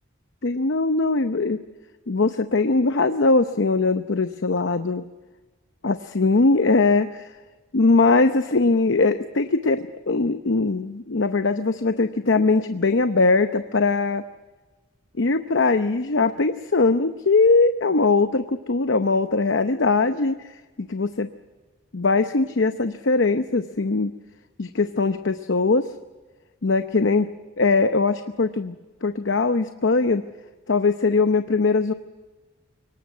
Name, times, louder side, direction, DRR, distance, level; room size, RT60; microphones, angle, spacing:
voice 1, 0.4-1.6 2.1-5.0 5.8-7.3 7.7-14.2 15.2-20.4 20.8-21.3 21.9-24.1 24.6-25.9 26.6-27.3 27.6-30.2 30.7-31.9, left 3 dB, 60° left, 9 dB, 0.8 m, -21 dB
23.5 x 19.0 x 9.4 m, 1.2 s
head